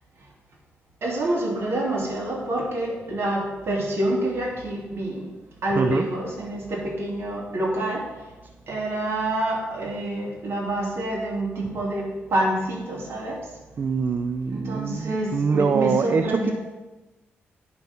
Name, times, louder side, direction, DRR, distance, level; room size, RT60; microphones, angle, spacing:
voice 1, 1.0-5.3 5.6-8.1 8.7-13.5 14.5-16.5, right 1 dB, 65° right, -2 dB, 2.7 m, -27 dB
voice 2, 5.8-6.1 13.8-16.5, right 5 dB, 45° right, 9 dB, 0.4 m, -24 dB
9.6 x 5.3 x 6.0 m, 1.1 s
cardioid pair, 105°, 4 cm